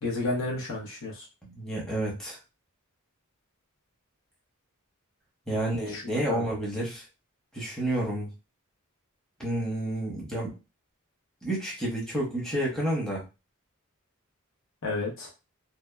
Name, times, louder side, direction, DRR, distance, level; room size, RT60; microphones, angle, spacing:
voice 1, 0.0-1.2 5.5-6.0 6.3-6.4 14.8-15.3, left 2 dB, 65° left, -3 dB, 0.8 m, -32 dB
voice 2, 1.4-2.4 5.5-7.0 7.5-8.3 9.4-10.5 11.4-13.2, right 1 dB, 5° left, -5 dB, 0.8 m, -30 dB
2.7 x 2.1 x 2.2 m, 0.28 s
head